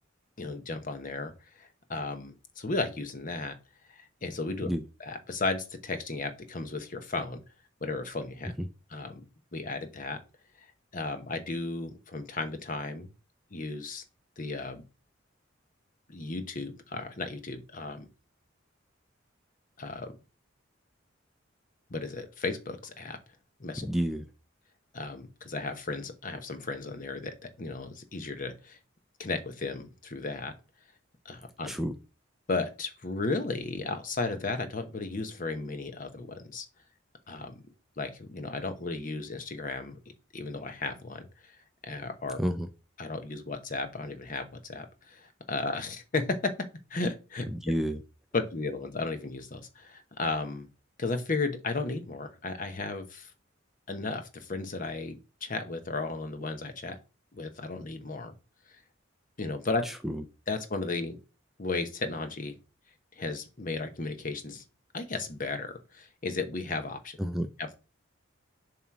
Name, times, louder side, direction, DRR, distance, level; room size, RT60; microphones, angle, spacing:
voice 1, 0.4-1.3 1.6-3.6 3.9-4.7 5.0-7.4 7.8-8.5 8.9-9.2 9.5-10.2 10.9-13.1 13.5-14.0 14.4-14.8 16.1-18.1 19.8-20.1 21.9-23.2 23.6-23.9 24.9-28.8 29.2-30.5 31.2-31.7 32.5-36.7 37.3-37.6 38.0-40.0 40.3-41.6 41.8-42.4 43.0-46.5 46.9-47.5 48.3-50.7 51.0-53.3 53.9-57.0 57.3-58.3 59.4-59.8 60.5-61.2 61.6-62.6 63.2-64.6 64.9-67.2 67.6-67.8, left 3 dB, 45° left, 1.0 m, -34 dB
voice 2, 23.8-24.3 31.7-31.9 42.4-42.7 47.5-48.0 60.0-60.2 67.2-67.5, equal, ahead, 0.4 m, -29 dB
7.2 x 3.1 x 5.9 m
head